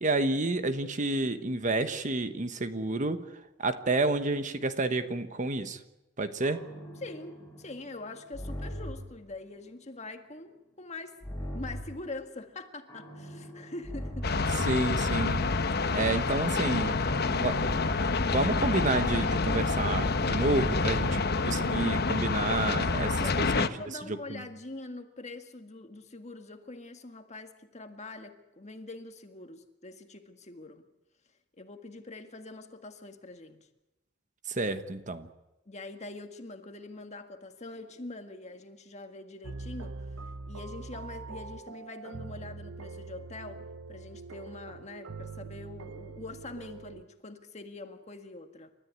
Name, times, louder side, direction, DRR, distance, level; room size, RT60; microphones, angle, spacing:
voice 1, 0.0-3.2 3.6-5.8 6.2-6.6 14.7-15.4 15.9-16.9 17.3-17.7 18.3-23.7 24.1-24.4 34.5-35.3, right 2 dB, 40° right, 10 dB, 1.2 m, -30 dB
sound 1, 6.4-9.2 11.2-12.0 12.9-15.9 17.5-21.4, equal, 15° left, 6.3 m, -38 dB
voice 2, 7.0-11.2 11.5-14.3 16.8-17.5 23.2-30.9 31.6-33.7 35.7-48.7, left 2 dB, 35° left, 6 dB, 1.7 m, -44 dB
sound 2, 14.2-23.7, left 4 dB, 50° left, 1.0 m, -28 dB
sound 3, 39.4-47.0, right 3 dB, 90° right, 0.8 m, -43 dB
29.5 x 14.0 x 9.5 m, 0.99 s
head